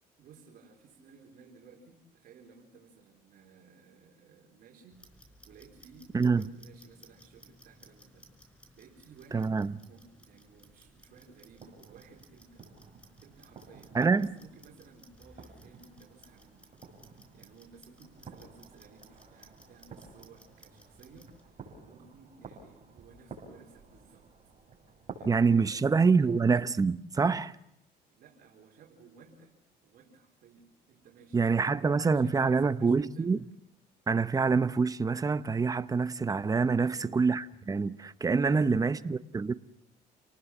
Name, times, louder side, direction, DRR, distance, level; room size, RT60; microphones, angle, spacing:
voice 1, 0.2-12.7 13.2-16.7 17.0-24.3 25.2-26.4 28.1-29.6 29.8-33.4 36.7-37.2 38.4-39.2, right 5 dB, 65° right, 4.2 m, -57 dB
Clock, 4.9-21.4, equal, 5° left, 4.3 m, -59 dB
voice 2, 6.1-6.5 9.3-9.7 13.9-14.4 25.3-27.5 31.3-33.4 34.1-39.5, right 4 dB, 20° right, 0.8 m, -26 dB
sound 1, 10.5-25.6, right 4 dB, 35° right, 6.8 m, -52 dB
29.0 x 19.0 x 7.2 m
cardioid pair, 110°, 17 cm